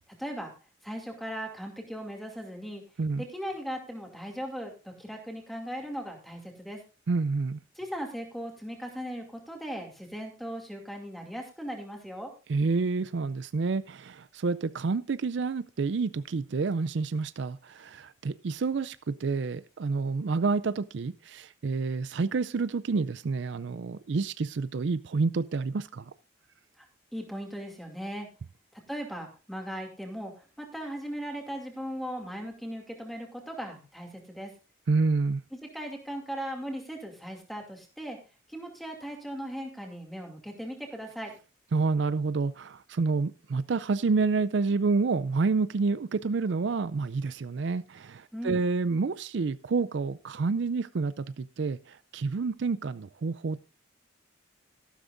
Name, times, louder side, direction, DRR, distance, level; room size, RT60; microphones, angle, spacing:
voice 1, 0.2-0.5 0.8-2.8 3.2-6.8 7.8-12.3 26.8-26.9 27.1-28.3 28.7-34.5 35.7-38.2 38.5-41.3 48.3-48.6, equal, ahead, 2.5 m, -38 dB
voice 2, 7.1-7.6 12.5-26.1 34.9-35.4 41.7-53.6, right 4 dB, 65° right, 0.4 m, -28 dB
13.5 x 12.0 x 2.6 m
head